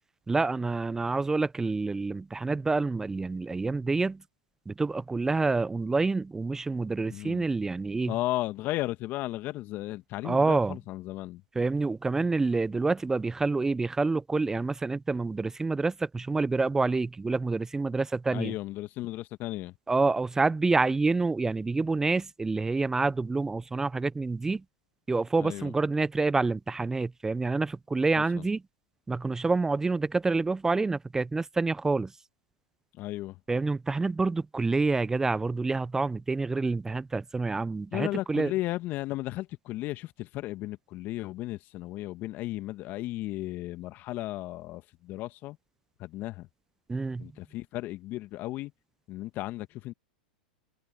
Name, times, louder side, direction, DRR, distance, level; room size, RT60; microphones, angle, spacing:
voice 1, 0.3-4.2 4.7-8.1 10.2-10.8 11.6-18.5 19.9-24.6 25.1-28.6 29.1-32.1 33.5-38.5 46.9-47.2, right 3 dB, 10° right, 0.6 m, -27 dB
voice 2, 7.1-7.5 8.1-11.4 18.3-19.7 25.4-25.7 28.2-28.5 32.9-33.4 37.9-45.6 46.0-46.5 47.2-48.7 49.1-49.9, left 17 dB, 40° left, 1.6 m, -35 dB
hypercardioid pair, 100°, 5 cm